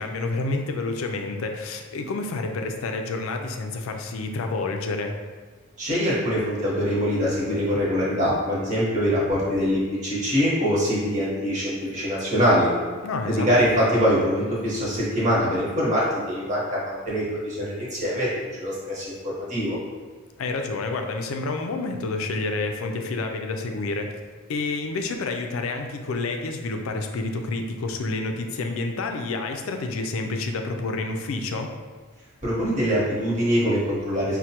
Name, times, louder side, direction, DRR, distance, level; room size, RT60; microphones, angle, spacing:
voice 1, 0.0-5.1 13.0-13.5 20.4-24.1 24.5-31.7, left 3 dB, 70° left, 4 dB, 0.4 m, -29 dB
voice 2, 5.8-12.7 13.3-19.8 32.4-34.4, equal, 35° right, -7 dB, 1.1 m, -23 dB
4.4 x 2.2 x 2.8 m, 1.5 s
head